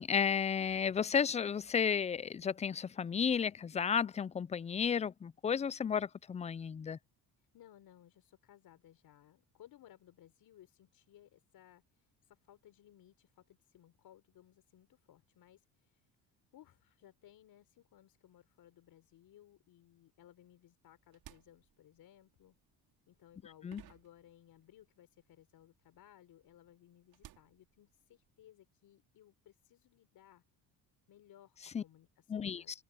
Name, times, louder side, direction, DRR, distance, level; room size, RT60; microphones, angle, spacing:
voice 1, 0.0-7.0 23.6-23.8 31.7-31.8 32.3-32.8, left 7 dB, 20° left, 0.3 m, -33 dB
voice 2, 7.4-16.1 16.5-22.6 23.1-30.4 31.1-32.8, left 12 dB, 65° left, 4.6 m, -62 dB
sound 1, 20.8-24.9 25.2-28.4, right 13 dB, 70° right, 5.8 m, -61 dB
cardioid pair, 115°, 38 cm